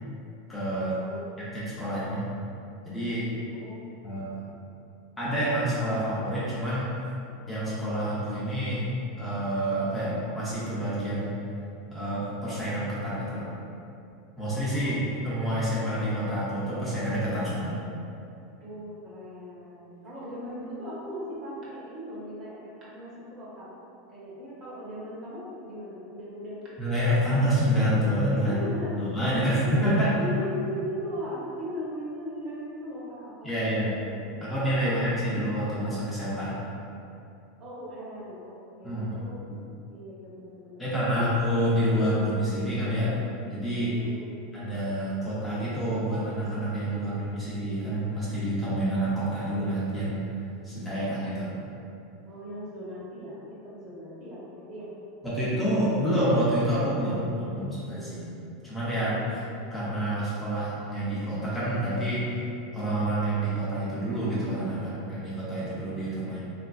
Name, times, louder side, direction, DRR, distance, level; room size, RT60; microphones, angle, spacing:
voice 1, 0.5-1.0 1.4-2.2 2.9-3.3 4.0-4.3 5.2-7.0 7.5-8.9 9.2-11.4 11.9-13.4 14.4-15.0 15.2-17.8 26.8-28.6 29.0-30.1 33.4-33.9 34.4-36.6 38.8-39.1 40.8-43.1 43.5-43.9 44.5-50.3 50.6-51.5 55.2-58.3 58.6-59.2 59.7-62.3 62.7-66.4, equal, 10° left, -10 dB, 0.6 m, -28 dB
voice 2, 1.0-1.5 1.8-1.9 3.5-3.8 14.7-15.0 18.6-23.7 24.1-26.6 27.3-27.4 28.3-29.0 29.2-29.9 30.2-34.1 34.8-35.3 37.6-39.4 39.9-41.3 43.9-44.4 46.8-47.2 52.3-54.9 57.2-58.1 59.0-59.3, equal, 35° right, -7 dB, 0.8 m, -39 dB
3.1 x 2.4 x 2.2 m, 2.7 s
supercardioid pair, 155°, 0 cm